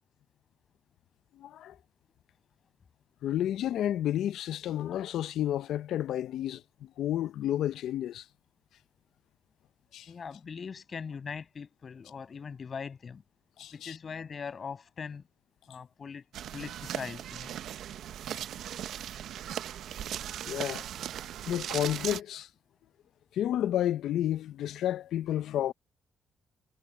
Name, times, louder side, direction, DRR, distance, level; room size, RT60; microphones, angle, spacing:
voice 1, 1.3-1.8 3.2-8.3 9.9-10.1 13.6-14.0 20.5-20.9 21.5-22.5 23.3-25.7, left 11 dB, 80° left, 0.6 m, -31 dB
voice 2, 10.1-13.2 13.7-15.2 15.7-16.2 16.5-17.6, left 6 dB, 45° left, 6.1 m, -41 dB
sound 1, 16.3-22.2, right 10 dB, 75° right, 0.7 m, -38 dB
cardioid pair, 90°, 0 cm